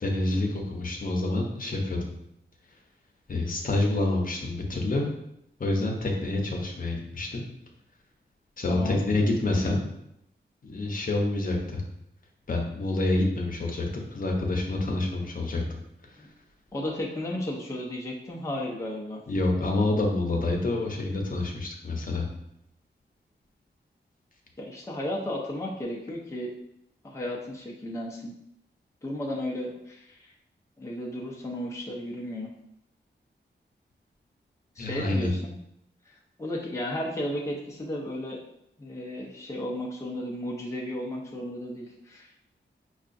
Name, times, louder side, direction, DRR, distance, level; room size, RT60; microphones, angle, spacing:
voice 1, 0.0-2.1 3.3-5.1 5.6-7.4 8.6-9.8 10.6-11.8 12.5-15.6 16.1-16.2 19.3-22.3 34.8-35.3, left 2 dB, 45° left, 0 dB, 0.7 m, -27 dB
voice 2, 8.7-9.0 16.2-16.3 16.7-19.2 24.6-26.5 27.0-28.3 29.0-30.3 30.8-32.5 34.8-35.5 36.1-36.2 36.4-38.4 38.8-42.4, left 1 dB, 15° left, -3 dB, 0.5 m, -34 dB
5.4 x 2.4 x 2.5 m, 0.79 s
wide cardioid pair, 135°, 19 cm